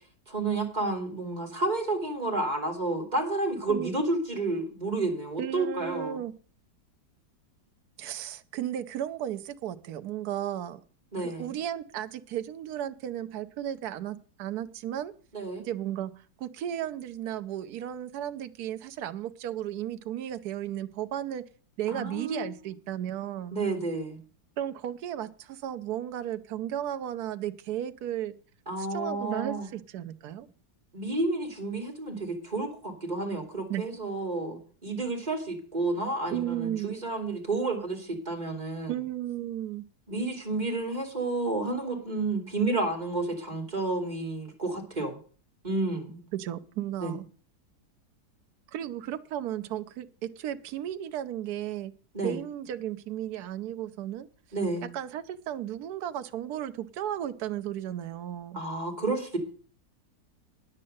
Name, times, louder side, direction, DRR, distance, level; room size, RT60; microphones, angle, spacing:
voice 1, 0.3-6.2 11.1-11.5 15.3-15.6 21.9-22.5 23.5-24.2 28.7-29.7 30.9-38.9 40.1-45.2 45.6-46.2 47.0-47.1 52.1-52.4 54.5-54.9 58.5-59.4, right 2 dB, 25° right, 1 dB, 2.9 m, -30 dB
voice 2, 5.4-6.3 8.0-10.8 11.2-15.1 15.6-16.1 16.4-21.4 21.8-23.6 24.6-28.3 28.8-30.5 33.7-33.9 36.3-37.0 38.9-39.8 46.3-47.3 48.7-51.9 52.2-54.3 54.8-58.6, right 11 dB, 65° right, 9 dB, 1.2 m, -34 dB
9.8 x 7.5 x 7.8 m, 0.42 s
omnidirectional pair, 1.9 m